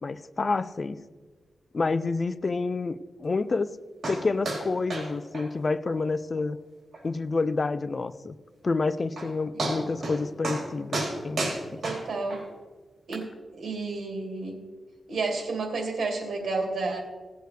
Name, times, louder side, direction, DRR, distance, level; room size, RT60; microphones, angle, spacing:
voice 1, 0.0-1.0 1.7-3.7 4.1-6.6 7.0-8.4 8.6-11.4 11.7-11.8, left 3 dB, 35° left, 14 dB, 0.4 m, -28 dB
sound 1, 4.0-4.2 4.4-4.6 4.9-5.1 5.3-5.4 5.9-6.0 6.4-6.5 6.9-7.0 8.7-8.8 9.2-9.3 9.6-10.2 10.4-10.6 10.9-12.4 13.1-13.2, right 2 dB, 65° right, 4.0 m, -30 dB
voice 2, 11.8-12.4 13.1-13.2 13.5-14.6 15.1-17.0, right 3 dB, 85° right, 2 dB, 2.1 m, -31 dB
17.0 x 8.0 x 3.3 m, 1.4 s
wide cardioid pair, 165°, 0 cm